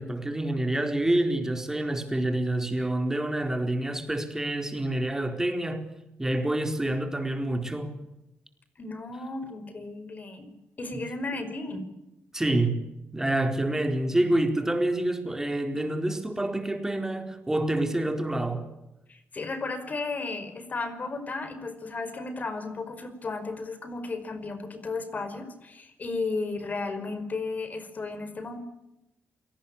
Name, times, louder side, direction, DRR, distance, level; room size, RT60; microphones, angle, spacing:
voice 1, 0.0-5.9 6.2-8.0 12.3-12.8 13.1-18.7, right 1 dB, 10° right, 4.4 m, -27 dB
voice 2, 8.8-11.9 19.1-28.6, left 3 dB, 40° left, 5.2 m, -34 dB
28.0 x 19.0 x 8.7 m
cardioid pair, 100°, 4 cm